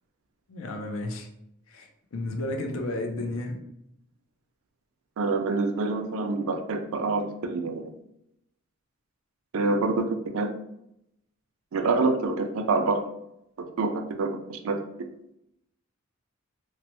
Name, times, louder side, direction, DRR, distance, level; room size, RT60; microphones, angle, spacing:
voice 1, 0.5-1.3 1.7-3.6, left 2 dB, 70° left, 4 dB, 0.5 m, -32 dB
voice 2, 5.2-7.9 9.5-10.5 11.7-13.0 13.8-14.8, right 3 dB, 75° right, 5 dB, 0.4 m, -26 dB
3.1 x 2.0 x 2.9 m, 0.80 s
head